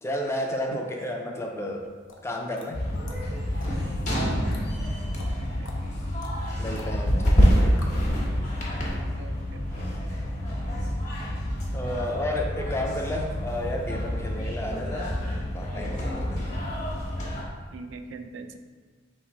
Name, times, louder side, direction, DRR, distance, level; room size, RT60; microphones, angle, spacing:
voice 1, 0.0-1.9 2.2-2.8 6.6-8.0 11.7-15.2 15.5-16.5, left 1 dB, 15° left, 2 dB, 0.4 m, -32 dB
sound 1, 1.8-8.1, left 2 dB, 85° left, 0.6 m, -48 dB
sound 2, 2.7-17.4, equal, 40° left, 1.1 m, -27 dB
voice 2, 4.1-4.6 5.4-5.7 9.2-9.6 17.7-18.6, right 4 dB, 80° right, 7 dB, 0.4 m, -39 dB
3.5 x 3.1 x 4.8 m, 1.5 s
head